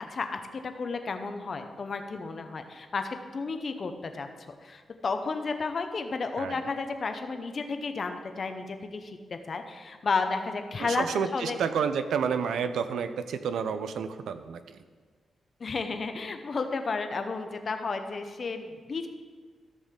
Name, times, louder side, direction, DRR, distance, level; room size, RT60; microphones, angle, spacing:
voice 1, 0.1-4.3 4.6-11.0 11.3-11.6 15.6-19.1, left 4 dB, 45° left, 7 dB, 0.8 m, -32 dB
voice 2, 10.8-14.8, right 6 dB, 90° right, 11 dB, 0.5 m, -30 dB
13.5 x 6.5 x 3.7 m, 1.5 s
cardioid pair, 105°, 0 cm